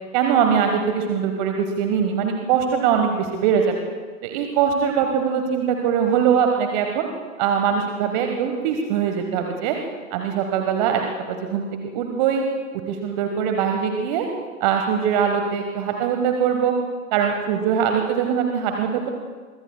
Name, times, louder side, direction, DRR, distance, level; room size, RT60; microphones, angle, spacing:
voice 1, 0.1-3.8 4.2-7.1 7.4-9.8 10.1-11.0 11.3-11.7 11.9-12.4 12.9-14.3 14.6-16.7 17.1-19.1, right 7 dB, 30° right, 4 dB, 1.3 m, -22 dB
26.5 x 23.5 x 2.3 m, 1.4 s
figure-of-eight pair, 115°, 43 cm